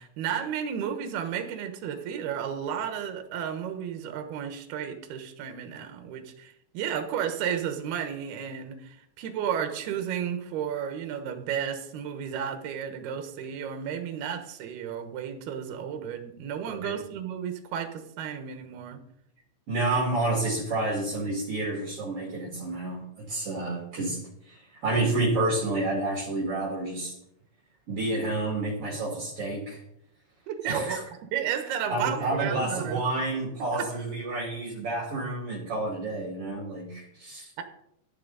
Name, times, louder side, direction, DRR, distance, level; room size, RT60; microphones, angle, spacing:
voice 1, 0.0-19.0 30.5-31.0 31.3-33.0 33.7-33.9 37.6-37.7, right 8 dB, 65° right, 6 dB, 2.7 m, -33 dB
voice 2, 16.7-17.0 19.7-27.1 27.9-29.8 30.6-31.0 31.9-37.5, right 2 dB, 40° right, -4 dB, 2.2 m, -29 dB
13.5 x 11.0 x 4.1 m, 0.76 s
omnidirectional pair, 5.9 m